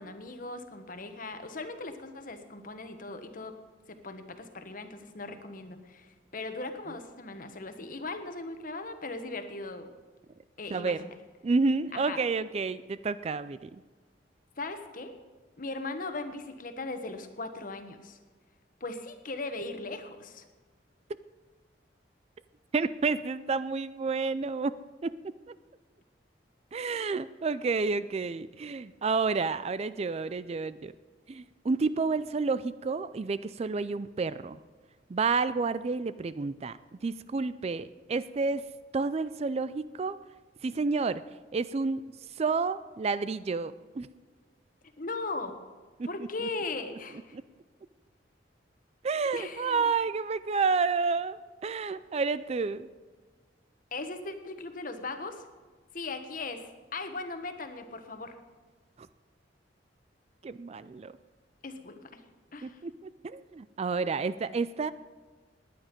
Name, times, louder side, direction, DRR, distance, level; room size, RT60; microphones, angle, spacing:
voice 1, 0.0-3.5 3.9-9.9 10.6-11.1 11.9-12.2 14.6-15.1 15.6-18.2 18.8-20.4 45.0-45.5 46.0-47.4 49.3-49.9 53.9-55.4 55.9-56.6 56.9-58.3 61.6-62.2 62.5-62.8, left 3 dB, 50° left, 8 dB, 1.2 m, -38 dB
voice 2, 10.7-11.0 11.4-13.7 22.7-24.8 25.0-25.1 26.7-30.9 31.3-34.6 35.1-36.8 37.0-38.6 38.9-40.2 40.6-41.2 41.5-42.0 42.4-44.1 46.0-46.1 46.4-46.5 47.3-47.4 49.0-52.9 60.4-61.1 62.6-62.9 63.2-64.9, right 4 dB, 35° right, 15 dB, 0.4 m, -30 dB
19.0 x 9.8 x 5.2 m, 1.4 s
head